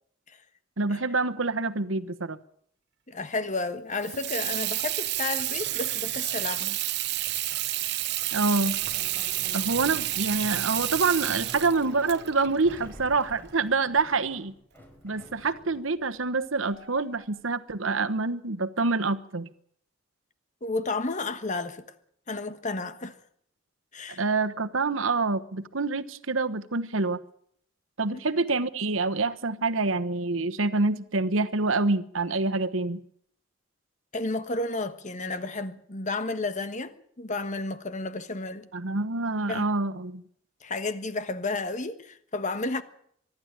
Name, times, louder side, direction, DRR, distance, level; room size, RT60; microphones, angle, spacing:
voice 1, 0.8-2.4 8.3-8.8 9.5-14.5 15.0-19.5 24.2-27.2 28.0-33.0 38.7-40.2, right 3 dB, 85° right, 1.2 m, -26 dB
voice 2, 3.1-6.8 20.6-21.8 22.3-23.2 23.9-24.2 28.1-28.2 34.1-38.7 39.5-39.6 40.6-42.8, left 3 dB, 40° left, 1.4 m, -32 dB
Water tap faucet / Sink (filling or washing), 3.9-13.5, right 15 dB, 60° right, 0.8 m, -30 dB
sound 1, 8.3-17.3, equal, 10° left, 4.6 m, -48 dB
24.0 x 12.0 x 8.9 m
head